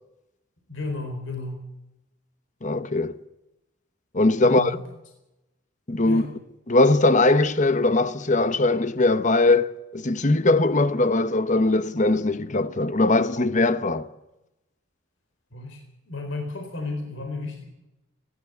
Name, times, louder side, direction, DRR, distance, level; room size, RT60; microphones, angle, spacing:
voice 1, 0.7-1.7 4.4-4.8 6.0-6.2 15.5-17.6, left 3 dB, 65° left, 4.3 m, -33 dB
voice 2, 2.6-3.2 4.1-4.8 5.9-6.2 6.7-14.1, left 2 dB, 35° left, 1.0 m, -20 dB
29.5 x 12.0 x 7.9 m
head